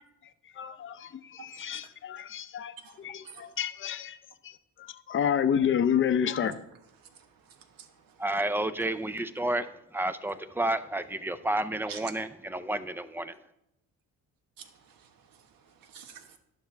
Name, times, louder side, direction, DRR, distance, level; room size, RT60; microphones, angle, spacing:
voice 1, 0.5-4.2 4.4-6.5, left 8 dB, 35° left, 0.6 m, -29 dB
voice 2, 1.4-1.8 2.8-3.5 6.4-6.5 7.0-8.2 11.9-12.0 14.6-16.4, right 7 dB, 70° right, 1.4 m, -49 dB
voice 3, 8.2-13.4, right 1 dB, 5° right, 0.4 m, -31 dB
11.5 x 11.5 x 3.3 m
cardioid pair, 130°, 36 cm